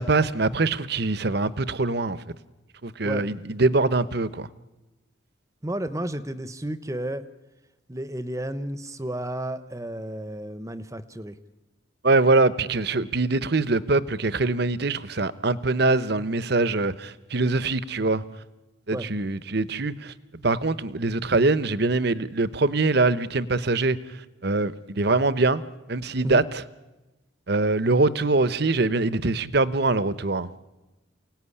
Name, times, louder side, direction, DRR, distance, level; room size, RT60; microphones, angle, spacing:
voice 1, 0.0-2.2 2.8-4.5 12.0-18.2 18.9-24.0 24.4-25.6 25.9-26.6 27.5-30.5, right 3 dB, 55° right, 0.9 m, -23 dB
voice 2, 5.6-7.2 7.9-11.4 18.9-19.1 26.2-26.4, right 1 dB, 15° right, 0.8 m, -32 dB
28.5 x 18.0 x 9.9 m
head